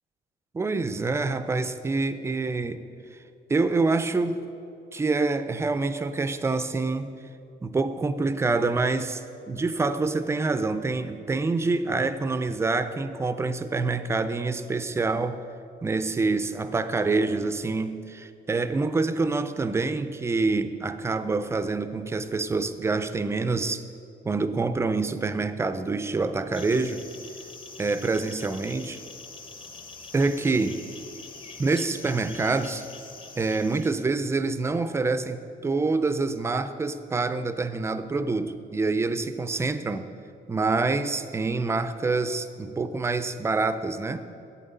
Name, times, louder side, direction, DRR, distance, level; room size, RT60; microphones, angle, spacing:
voice 1, 0.5-2.8 3.5-4.4 4.9-7.1 7.6-15.4 15.8-23.8 24.2-27.0 27.8-29.0 30.1-30.8 31.6-32.9 33.4-40.1 40.5-44.3, right 3 dB, 15° right, 11 dB, 0.3 m, -26 dB
sound 1, 26.5-34.1, left 4 dB, 25° left, 0.7 m, -44 dB
11.5 x 8.4 x 5.4 m, 2.6 s
cardioid pair, 175°, 18 cm